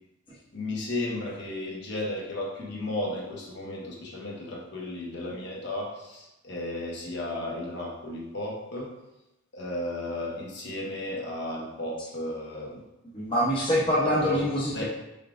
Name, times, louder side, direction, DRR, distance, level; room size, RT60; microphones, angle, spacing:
voice 1, 0.5-8.9 9.5-12.8 14.0-14.8, left 1 dB, 55° left, -4 dB, 1.1 m, -34 dB
voice 2, 13.1-14.8, equal, 25° left, -7 dB, 0.8 m, -25 dB
5.4 x 3.5 x 2.5 m, 0.95 s
head